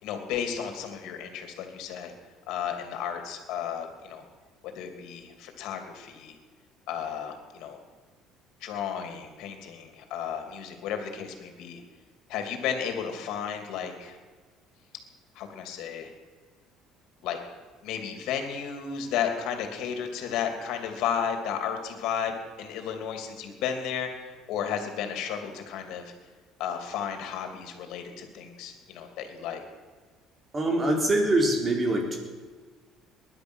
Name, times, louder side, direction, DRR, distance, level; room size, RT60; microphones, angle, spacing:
voice 1, 0.0-2.1 2.5-4.2 4.6-6.4 6.9-7.8 8.6-11.8 12.3-14.2 15.3-16.1 17.2-17.4 17.8-22.3 22.6-26.1 26.6-29.6, left 8 dB, 70° left, 5 dB, 2.9 m, -33 dB
voice 2, 30.5-32.2, right 1 dB, 25° right, 2 dB, 3.8 m, -24 dB
20.0 x 11.5 x 6.4 m, 1.5 s
cardioid pair, 125°, 0 cm